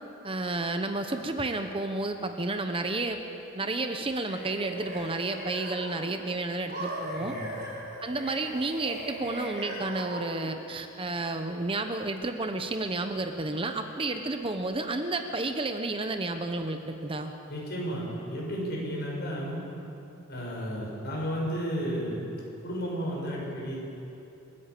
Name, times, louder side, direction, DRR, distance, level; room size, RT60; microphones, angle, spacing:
voice 1, 0.2-3.2 3.5-7.4 8.0-17.3, right 2 dB, 25° right, 6 dB, 0.8 m, -31 dB
sound 1, 4.0-6.2 6.7-10.6, right 1 dB, 50° right, 5.5 m, -39 dB
voice 2, 17.5-19.7 20.3-23.7, equal, 50° left, -3 dB, 6.7 m, -33 dB
28.5 x 11.0 x 8.4 m, 2.9 s
head